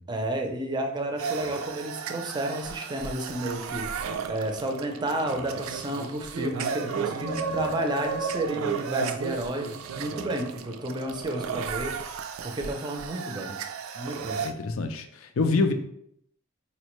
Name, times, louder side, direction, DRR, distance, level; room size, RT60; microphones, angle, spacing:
voice 1, 0.1-13.5 13.9-14.4, right 1 dB, 20° right, 3 dB, 0.5 m, -31 dB
sound 1, 1.2-14.5, right 6 dB, 80° right, 0.3 m, -34 dB
voice 2, 7.2-7.8 14.4-15.7, left 3 dB, 75° left, 7 dB, 0.4 m, -27 dB
4.3 x 2.1 x 3.0 m, 0.71 s
head